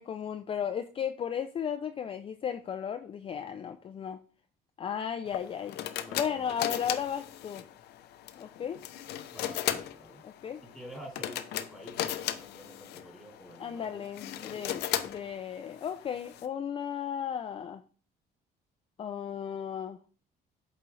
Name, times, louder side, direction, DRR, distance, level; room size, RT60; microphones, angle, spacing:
voice 1, 0.0-4.2 4.8-5.8 6.1-7.6 8.4-8.8 10.2-10.6 13.6-17.8 19.0-20.0, left 8 dB, 35° left, 0.4 m, -35 dB
sound 1, 5.3-16.5, left 12 dB, 75° left, 0.6 m, -37 dB
voice 2, 5.9-6.8 9.3-10.2 10.6-14.0 14.4-14.7, equal, ahead, 3.3 m, -48 dB
8.2 x 3.9 x 3.2 m
cardioid pair, 110°, 17 cm